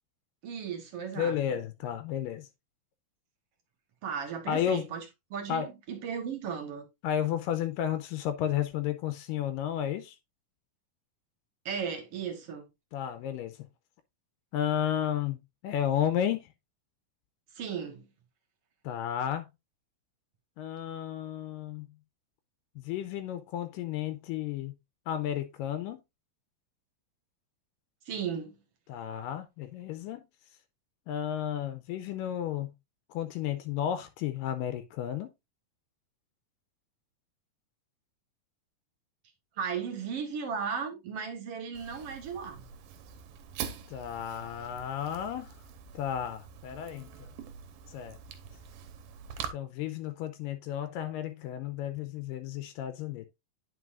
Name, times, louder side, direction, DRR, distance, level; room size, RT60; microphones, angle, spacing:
voice 1, 0.4-1.6 4.0-5.0 5.3-6.9 11.7-12.7 17.6-18.1 28.1-28.5 39.6-42.6, right 6 dB, 55° right, 1.9 m, -36 dB
voice 2, 1.2-2.5 4.5-4.9 5.5-5.7 7.0-10.2 12.9-13.6 14.5-16.5 18.8-19.5 20.6-21.9 22.8-24.7 25.1-26.0 28.9-30.2 31.1-32.7 33.1-35.3 43.9-45.5 45.9-47.3 47.9-48.2 49.5-53.3, left 10 dB, 80° left, 2.3 m, -32 dB
Fire, 41.7-49.5, right 8 dB, 80° right, 2.4 m, -44 dB
9.5 x 5.4 x 2.5 m
omnidirectional pair, 3.9 m